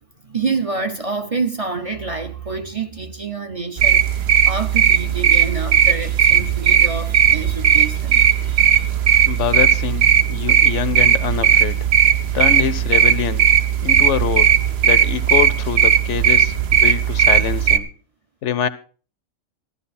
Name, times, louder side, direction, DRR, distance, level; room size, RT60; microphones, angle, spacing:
voice 1, 0.2-4.1 4.5-9.3, right 4 dB, 30° right, 0.8 m, -28 dB
sound 1, 3.8-17.8, right 8 dB, 55° right, 1.0 m, -16 dB
voice 2, 9.3-11.8 12.3-13.5 13.8-14.5 14.8-16.5 16.8-17.9 18.4-18.7, left 9 dB, 70° left, 1.0 m, -24 dB
14.0 x 12.0 x 4.2 m
omnidirectional pair, 1.3 m